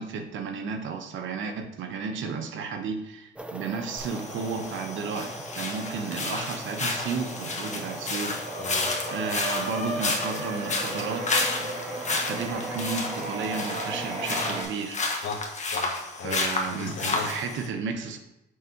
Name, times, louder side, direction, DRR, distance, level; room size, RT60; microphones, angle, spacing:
voice 1, 0.0-8.4 9.1-11.7 12.1-15.0 16.2-18.2, right 5 dB, 75° right, 6 dB, 0.9 m, -33 dB
sound 1, 3.3-14.6, right 2 dB, 5° right, 0.6 m, -41 dB
sound 2, 4.0-17.7, left 3 dB, 35° left, 1.2 m, -31 dB
sound 3, 5.4-6.1 6.4-14.6, right 1 dB, 35° right, 1.6 m, -36 dB
voice 2, 8.6-9.0 15.2-17.3, left 4 dB, 70° left, 1 dB, 1.3 m, -37 dB
6.6 x 3.5 x 4.5 m, 0.90 s
cardioid pair, 90°, 20 cm